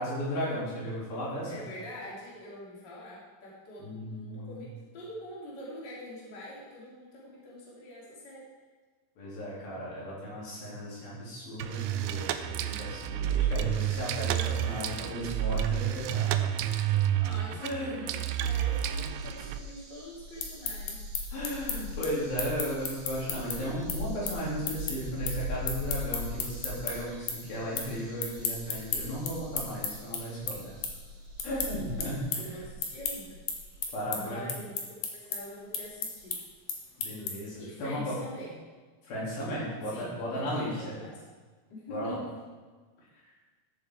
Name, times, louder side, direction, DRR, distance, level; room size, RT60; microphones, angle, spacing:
voice 1, 0.0-1.5 3.8-4.5 9.2-16.5 17.6-18.0 21.3-30.9 31.4-32.4 33.9-34.4 37.0-38.1 39.0-40.9 41.9-42.1, equal, 85° left, -6 dB, 5.1 m, -35 dB
voice 2, 1.5-8.5 17.2-21.0 32.4-33.4 34.1-36.4 37.6-38.6 39.5-41.2 41.7-42.4, equal, 30° left, -5 dB, 2.9 m, -44 dB
sound 1, 11.6-19.6, right 10 dB, 80° right, 2.2 m, -30 dB
sound 2, 19.0-34.2 35.8-35.9 36.2-36.3, equal, 60° right, 4.4 m, -41 dB
sound 3, 20.2-26.9 27.3-27.9 28.2-37.6, left 6 dB, 65° left, 2.7 m, -34 dB
13.0 x 7.0 x 4.7 m, 1.4 s
omnidirectional pair, 4.1 m